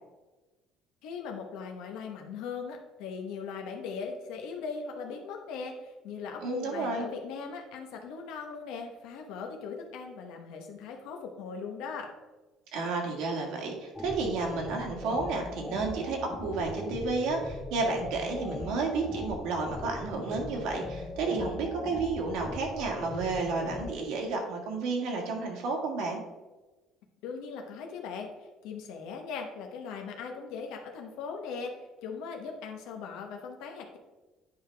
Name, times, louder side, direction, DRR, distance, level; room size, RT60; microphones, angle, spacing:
voice 1, 1.0-12.1 27.2-34.0, left 5 dB, 80° left, 3 dB, 1.0 m, -39 dB
voice 2, 6.4-7.1 12.7-26.2, right 3 dB, 75° right, 1 dB, 1.8 m, -31 dB
sound 1, 13.9-23.9, left 2 dB, 10° left, 0.5 m, -40 dB
9.6 x 4.9 x 3.4 m, 1.2 s
cardioid pair, 160°, 0 cm